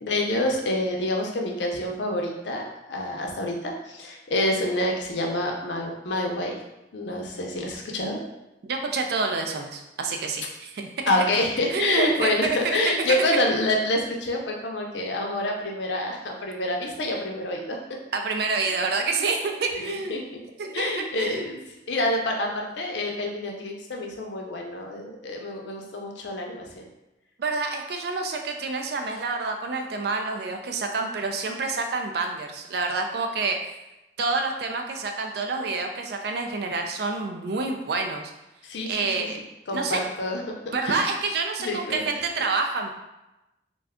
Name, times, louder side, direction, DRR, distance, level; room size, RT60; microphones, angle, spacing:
voice 1, 0.0-6.6 6.9-8.2 11.1-18.0 19.7-20.2 20.7-21.6 21.9-26.9 38.6-39.3 39.7-40.4 40.8-41.0 41.6-42.0, left 1 dB, 85° left, 0 dB, 0.5 m, -27 dB
voice 2, 8.6-10.9 11.7-12.8 13.1-13.2 18.1-20.3 20.6-21.4 27.4-33.6 34.2-38.3 38.9-39.4 39.7-40.0 40.7-42.9, right 3 dB, 65° right, 4 dB, 0.4 m, -28 dB
2.5 x 2.3 x 3.5 m, 0.96 s
head